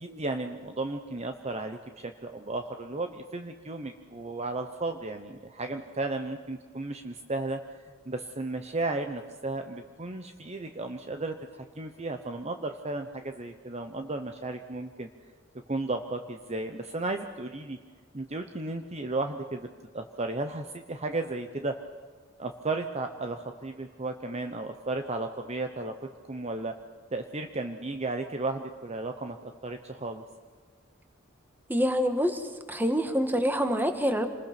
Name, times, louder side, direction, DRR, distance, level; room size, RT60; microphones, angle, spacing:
voice 1, 0.0-7.6 8.1-15.1 15.7-17.8 18.1-19.7 19.9-21.8 22.4-26.0 26.3-26.7 27.1-30.2, right 2 dB, 35° right, 6 dB, 1.0 m, -34 dB
voice 2, 31.7-34.3, equal, 10° right, 7 dB, 1.6 m, -26 dB
27.5 x 20.5 x 6.0 m, 1.5 s
head